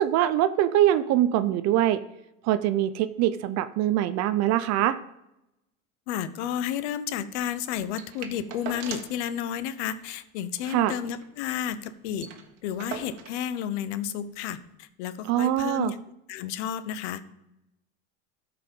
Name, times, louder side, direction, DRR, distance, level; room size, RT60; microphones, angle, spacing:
voice 1, 0.0-2.0 2.4-5.0 10.7-10.9 15.3-15.9, right 12 dB, 50° right, 12 dB, 0.5 m, -23 dB
voice 2, 6.1-12.3 12.6-16.0 16.3-17.2, left 9 dB, 85° left, 13 dB, 0.8 m, -32 dB
sound 1, 8.0-9.3 9.6-9.7 9.9-10.1 10.5-11.6 11.9-12.0 12.2-13.4 14.3-14.4, right 8 dB, 80° right, 1.4 m, -41 dB
13.0 x 4.9 x 5.2 m, 0.86 s
supercardioid pair, 135°, 34 cm